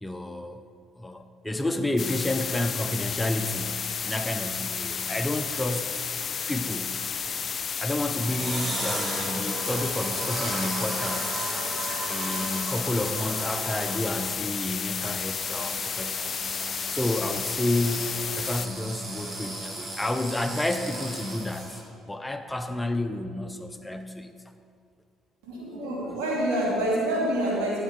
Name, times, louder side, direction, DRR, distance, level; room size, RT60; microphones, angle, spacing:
voice 1, 0.0-0.6 1.0-6.0 6.5-7.0 7.8-11.4 12.1-21.8 22.1-24.3, left 1 dB, 10° left, 8 dB, 0.7 m, -30 dB
sound 1, 2.0-18.7, left 6 dB, 45° left, 0.4 m, -32 dB
sound 2, 8.0-21.8, right 1 dB, 35° right, 2.2 m, -36 dB
voice 2, 25.4-27.8, right 1 dB, 75° right, -5 dB, 2.8 m, -27 dB
12.5 x 7.3 x 4.5 m, 2.3 s
hypercardioid pair, 55°, 0 cm